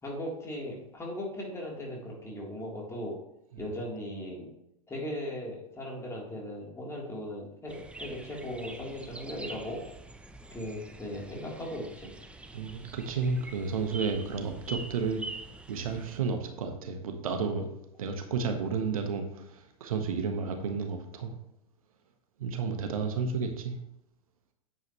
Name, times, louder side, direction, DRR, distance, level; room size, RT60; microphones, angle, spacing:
voice 1, 0.0-3.2 3.6-4.5 4.9-9.8 10.5-12.1, left 1 dB, 15° left, -3 dB, 3.4 m, -38 dB
sound 1, 7.7-16.2, right 2 dB, 5° right, 0.8 m, -45 dB
voice 2, 12.5-15.2 15.7-17.7 18.0-21.3 22.4-23.8, right 5 dB, 65° right, 5 dB, 1.4 m, -32 dB
10.0 x 7.9 x 3.1 m, 0.82 s
figure-of-eight pair, 95°, 19 cm